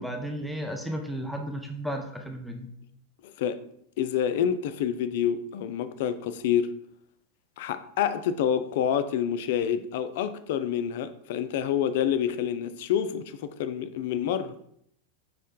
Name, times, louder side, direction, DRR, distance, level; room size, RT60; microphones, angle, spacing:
voice 1, 0.0-2.7, equal, ahead, 0.6 m, -34 dB
voice 2, 3.2-3.6 4.0-6.7 7.6-14.5, left 9 dB, 50° left, 0.3 m, -28 dB
4.6 x 3.1 x 3.7 m
figure-of-eight pair, 90°, 0 cm